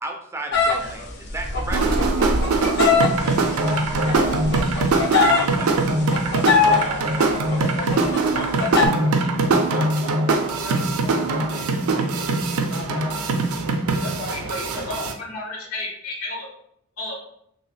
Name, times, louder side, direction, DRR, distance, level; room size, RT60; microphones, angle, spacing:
voice 1, 0.0-1.8 4.8-5.9, right 2 dB, 10° right, 2 dB, 0.3 m, -34 dB
sound 1, 0.5-5.6 5.9-6.8 7.2-7.6 7.9-8.9, left 4 dB, 50° left, 0.5 m, -21 dB
voice 2, 0.8-1.1 3.2-4.4 6.8-11.7 11.9-13.7 14.0-15.1, left 3 dB, 65° left, -1 dB, 1.0 m, -36 dB
sound 2, 1.7-15.1, right 3 dB, 80° right, 0.4 m, -22 dB
voice 3, 14.3-14.6 14.9-15.0 15.3-16.5 17.0-17.2, left 2 dB, 85° left, -2 dB, 1.2 m, -32 dB
3.0 x 2.7 x 3.1 m, 0.73 s
head